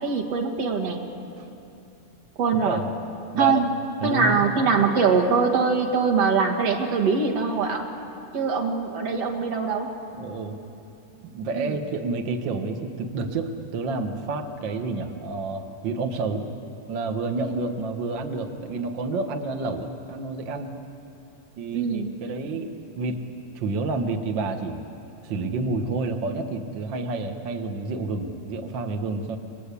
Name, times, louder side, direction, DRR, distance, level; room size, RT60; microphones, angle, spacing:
voice 1, 0.0-1.0 2.4-2.8 3.4-3.6 4.0-7.9 8.3-9.9 11.6-11.8 21.7-22.1, right 5 dB, 50° right, 4 dB, 2.5 m, -23 dB
voice 2, 2.6-2.9 3.3-3.7 4.0-4.9 10.1-10.6 11.2-16.4 16.9-20.7 21.6-23.2 23.5-24.8 25.2-29.4, right 3 dB, 75° right, 4 dB, 1.0 m, -29 dB
30.0 x 21.5 x 8.4 m, 2.8 s
omnidirectional pair, 4.3 m